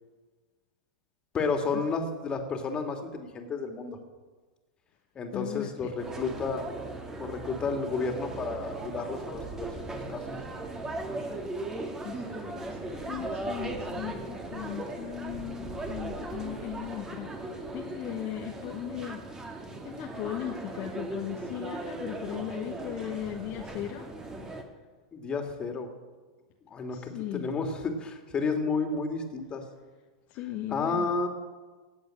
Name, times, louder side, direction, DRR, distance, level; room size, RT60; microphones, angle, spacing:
voice 1, 1.3-4.0 5.1-6.6 7.2-9.7 10.1-10.2 25.1-25.9 26.7-29.6 30.7-31.3, left 4 dB, 25° left, 5 dB, 2.7 m, -31 dB
voice 2, 5.3-5.9 12.0-24.1 26.9-27.5 30.3-31.1, left 12 dB, 45° left, 2 dB, 1.2 m, -38 dB
sound 1, 6.0-24.6, right 2 dB, 15° right, 2.2 m, -38 dB
17.0 x 7.9 x 8.9 m, 1.3 s
hypercardioid pair, 105°, 4 cm